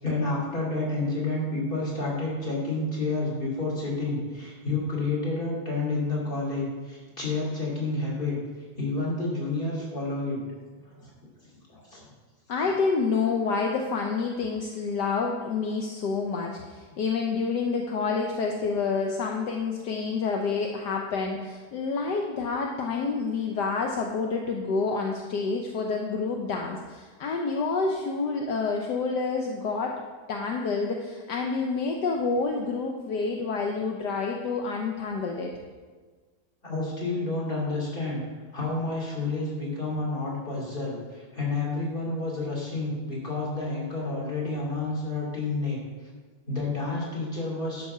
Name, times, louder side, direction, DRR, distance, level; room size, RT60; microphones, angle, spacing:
voice 1, 0.0-8.4 8.8-10.4 10.9-11.3 11.7-12.1 36.6-38.2 38.5-45.8 46.5-47.9, left 2 dB, 30° left, -4 dB, 3.0 m, -30 dB
voice 2, 12.5-29.9 30.3-35.5, left 4 dB, 70° left, 2 dB, 1.4 m, -28 dB
12.0 x 5.5 x 5.7 m, 1.4 s
omnidirectional pair, 1.9 m